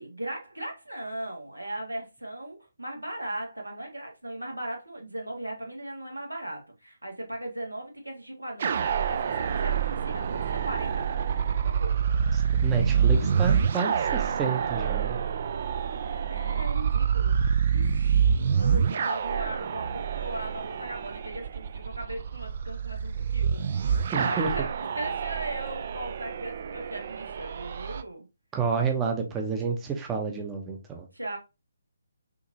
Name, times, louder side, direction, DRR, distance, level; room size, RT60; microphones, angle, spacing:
voice 1, 0.0-11.3 11.6-12.0 15.5-28.3 31.1-31.4, right 1 dB, 85° right, 1.6 m, -38 dB
sound 1, 8.6-28.0, right 7 dB, 45° right, 0.4 m, -27 dB
voice 2, 12.3-15.2 24.1-24.5 28.5-31.1, right 5 dB, 15° right, 0.7 m, -29 dB
6.2 x 2.8 x 2.7 m
figure-of-eight pair, 140°, 0 cm